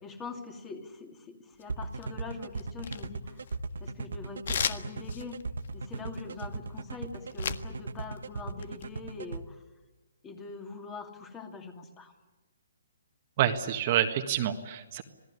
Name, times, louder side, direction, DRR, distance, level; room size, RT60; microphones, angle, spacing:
voice 1, 0.0-3.4 3.8-5.4 5.7-9.6 10.2-12.1, left 4 dB, 15° left, 5 dB, 2.5 m, -43 dB
sound 1, 1.6-2.2 2.6-3.9 4.4-7.7 8.0-8.9, left 7 dB, 60° left, 1.5 m, -35 dB
sound 2, 1.7-9.4, right 4 dB, 80° right, 1.3 m, -37 dB
voice 2, 13.4-15.0, right 10 dB, 35° right, 6 dB, 1.7 m, -27 dB
27.0 x 18.0 x 9.9 m, 1.2 s
hypercardioid pair, 160°, 0 cm